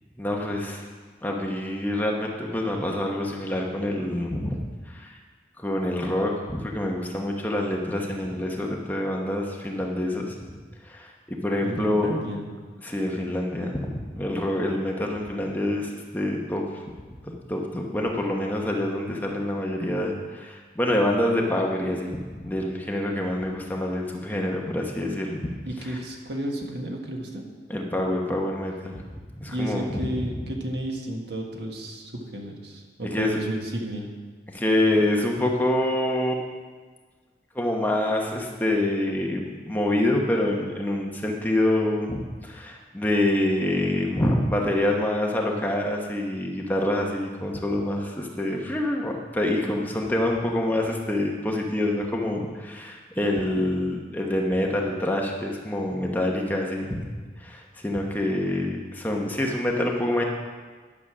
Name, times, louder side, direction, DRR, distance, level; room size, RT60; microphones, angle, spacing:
voice 1, 0.2-0.8 1.2-4.6 4.9-5.2 5.6-10.3 10.8-12.1 12.8-16.8 17.2-25.4 25.8-26.0 27.7-29.0 29.4-30.0 33.1-33.4 34.5-36.4 37.5-57.1 57.4-60.2, left 1 dB, 10° left, 0 dB, 1.0 m, -26 dB
voice 2, 11.6-12.5 25.6-27.4 29.4-34.1, right 1 dB, 70° right, 1 dB, 1.6 m, -32 dB
11.0 x 6.9 x 6.2 m, 1.4 s
head